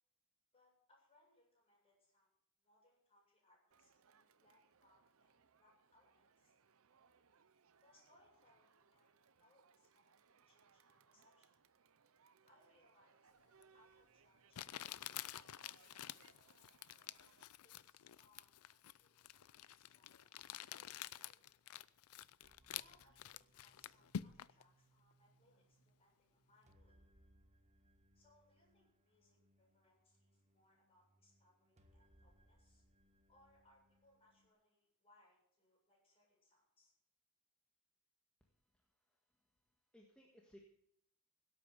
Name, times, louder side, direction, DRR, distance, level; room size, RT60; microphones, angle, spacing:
voice 1, 0.5-2.3 2.6-6.5 7.8-11.6 12.4-16.5 17.6-21.5 22.7-26.9 28.1-32.8 33.3-36.9, left 1 dB, 25° left, -3 dB, 7.7 m, -74 dB
Crowd, 3.7-17.4, right 6 dB, 65° right, 0.8 m, -71 dB
Crumpling crinkling, 13.6-13.7 14.5-24.6, left 10 dB, 80° left, 0.5 m, -49 dB
sound 1, 22.4-34.5, right 1 dB, 30° right, 1.5 m, -73 dB
voice 2, 38.4-40.6, equal, 5° left, -1 dB, 1.8 m, -66 dB
17.0 x 8.4 x 6.9 m, 0.69 s
head